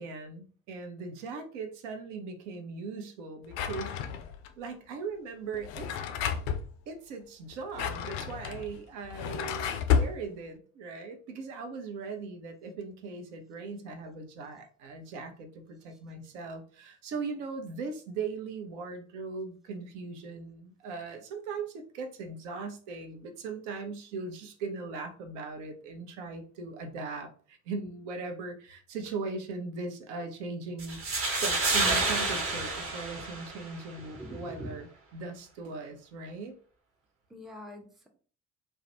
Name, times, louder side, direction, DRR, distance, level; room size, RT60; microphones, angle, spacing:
voice 1, 0.0-3.9 4.6-6.0 6.9-31.0 31.4-34.9 35.1-36.5, right 4 dB, 65° right, 5 dB, 0.6 m, -39 dB
Drawer open or close, 3.5-4.5 5.5-6.7 7.5-10.2, left 7 dB, 60° left, 0.4 m, -31 dB
sound 1, 30.8-33.8, right 3 dB, 35° right, 0.9 m, -29 dB
voice 2, 34.0-34.7 37.3-38.1, left 1 dB, ahead, 2 dB, 0.5 m, -44 dB
2.3 x 2.1 x 2.8 m, 0.42 s
figure-of-eight pair, 50°, 38 cm